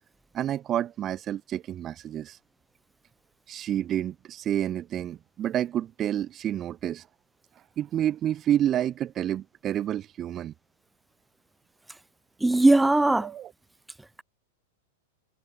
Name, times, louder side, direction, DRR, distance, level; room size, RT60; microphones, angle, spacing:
voice 1, 0.3-2.4 3.5-7.1 7.8-10.5 13.2-13.5, right 11 dB, 30° right, 3.7 m, -29 dB
voice 2, 12.4-13.3, right 2 dB, 5° right, 6.0 m, -19 dB
hypercardioid pair, 105°, 0 cm